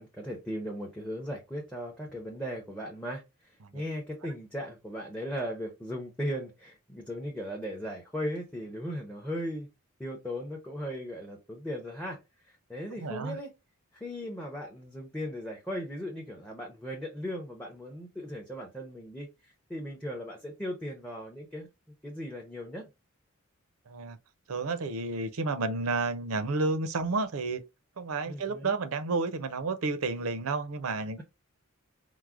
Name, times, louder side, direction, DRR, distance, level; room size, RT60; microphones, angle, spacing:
voice 1, 0.0-9.7 10.0-12.2 12.5-13.5 13.9-21.7 22.0-22.9 28.3-28.8, equal, 5° left, 0.5 m, -37 dB
voice 2, 12.9-13.4 23.9-24.2 24.5-27.6 28.0-31.2, right 3 dB, 75° right, 0.5 m, -31 dB
4.6 x 2.0 x 2.4 m
head